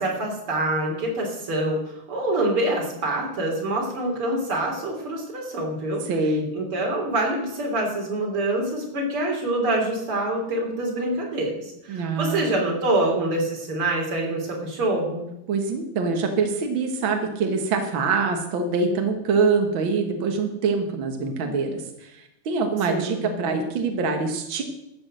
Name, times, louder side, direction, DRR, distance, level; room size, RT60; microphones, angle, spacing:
voice 1, 0.0-1.8 2.1-6.0 6.5-15.2 22.9-23.3, right 1 dB, 35° right, 0 dB, 3.8 m, -25 dB
voice 2, 6.0-6.5 11.9-12.4 15.5-24.6, right 4 dB, 65° right, 4 dB, 1.2 m, -24 dB
13.0 x 8.8 x 7.7 m, 0.87 s
omnidirectional pair, 4.5 m